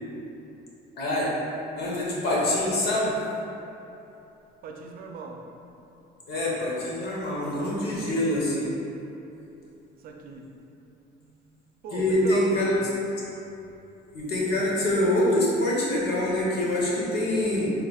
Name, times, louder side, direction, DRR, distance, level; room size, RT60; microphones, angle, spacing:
voice 1, 1.0-1.3 1.7-3.1 6.3-8.7 11.9-12.8 14.1-17.7, left 1 dB, 75° left, -5 dB, 1.1 m, -25 dB
voice 2, 4.6-5.4 10.0-10.5 10.7-10.8 11.1-11.3 11.8-12.9, right 4 dB, 60° right, 1 dB, 0.5 m, -38 dB
4.9 x 3.3 x 2.4 m, 2.9 s
cardioid pair, 110°, 17 cm